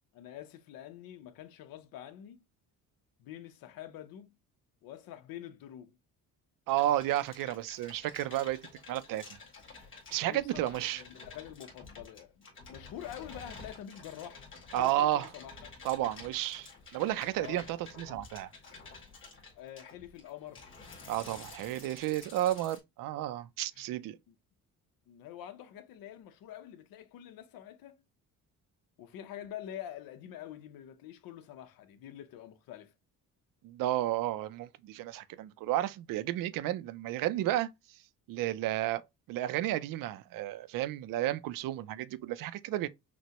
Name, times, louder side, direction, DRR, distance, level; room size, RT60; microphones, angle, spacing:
voice 1, 0.1-2.4 3.2-4.3 4.8-6.0 10.2-14.5 14.8-15.7 17.4-17.6 19.6-20.6 23.7-23.8 24.3-24.4 25.1-28.0 29.0-32.9, left 11 dB, 85° left, 0.8 m, -46 dB
sound 1, 6.7-22.8, left 4 dB, 35° left, 2.0 m, -51 dB
voice 2, 6.7-8.6 8.9-9.2 10.1-11.0 14.7-15.3 15.8-18.5 21.1-24.2 33.6-37.7 38.3-39.0 39.3-42.9, right 14 dB, 70° right, 0.5 m, -32 dB
6.0 x 2.2 x 2.9 m
cardioid pair, 135°, 34 cm